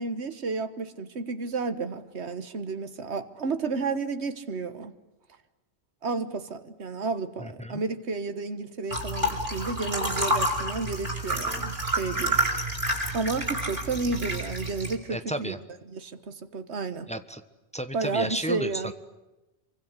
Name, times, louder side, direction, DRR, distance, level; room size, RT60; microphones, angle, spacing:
voice 1, 0.0-4.9 6.0-12.4 13.1-15.6 15.9-17.1 17.9-18.9, right 4 dB, 80° right, 10 dB, 1.7 m, -32 dB
voice 2, 7.4-7.8 15.1-15.6 17.1-17.4 17.7-18.9, right 1 dB, 5° left, 10 dB, 1.2 m, -33 dB
sound 1, 8.9-14.9, right 1 dB, 50° right, 6.1 m, -29 dB
28.0 x 24.5 x 8.3 m, 1.0 s
omnidirectional pair, 1.1 m